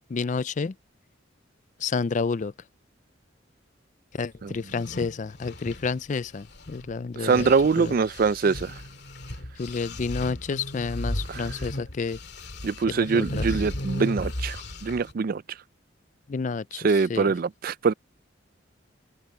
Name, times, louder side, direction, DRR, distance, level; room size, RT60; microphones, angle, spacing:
voice 1, 0.1-0.7 1.8-2.5 4.1-7.9 9.6-12.2 12.9-13.5 16.3-17.3, left 4 dB, 40° left, 0.4 m, -30 dB
sound 1, 4.5-6.9 7.2-15.1, left 1 dB, 60° left, 2.6 m, -35 dB
voice 2, 7.2-8.7 11.3-11.5 12.6-15.4 16.8-17.9, right 5 dB, 50° right, 0.4 m, -24 dB
open air
head